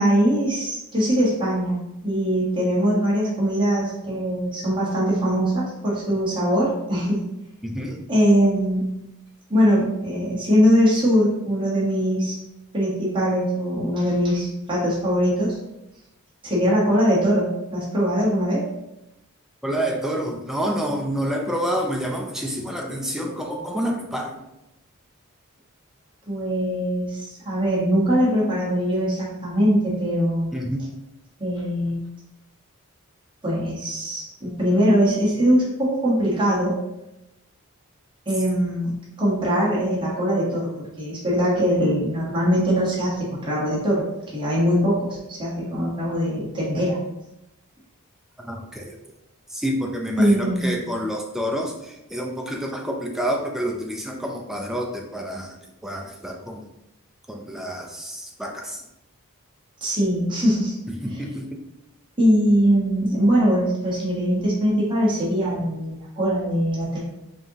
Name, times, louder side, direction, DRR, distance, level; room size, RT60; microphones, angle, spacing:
voice 1, 0.0-1.8 2.0-7.3 8.1-9.0 9.5-12.4 12.7-15.6 16.4-18.6 26.3-30.5 31.4-32.0 33.4-36.8 38.3-47.0 50.2-50.8 59.8-60.7 61.1-61.2 62.2-67.0, equal, 20° right, -7 dB, 1.0 m, -21 dB
voice 2, 7.6-8.0 19.6-24.4 30.5-30.8 48.4-49.0 49.5-55.5 55.8-56.7 57.3-58.8 61.0-61.6, equal, ahead, 1 dB, 0.4 m, -28 dB
5.0 x 2.8 x 2.8 m, 0.91 s
head